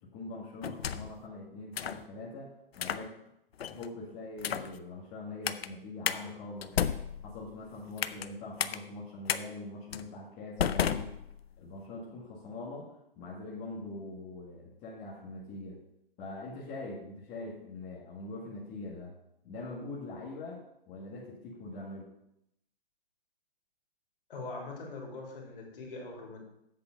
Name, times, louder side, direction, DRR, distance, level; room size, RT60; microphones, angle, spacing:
voice 1, 0.0-3.1 3.7-6.7 7.2-11.1 11.6-15.8 16.2-19.1 19.4-22.1, left 2 dB, 25° left, -5 dB, 1.9 m, -43 dB
sound 1, 0.6-1.2 1.8-2.0 2.7-3.1 3.6-3.9 4.4-4.8 5.5-5.7 6.1-6.2 6.6-8.3 8.6-8.8 9.3-9.4 9.9-10.1 10.6-11.7, left 8 dB, 80° left, 0.6 m, -32 dB
voice 2, 24.3-26.5, left 3 dB, 65° left, -1 dB, 3.3 m, -42 dB
8.0 x 6.9 x 5.2 m, 0.81 s
hypercardioid pair, 140°, 30 cm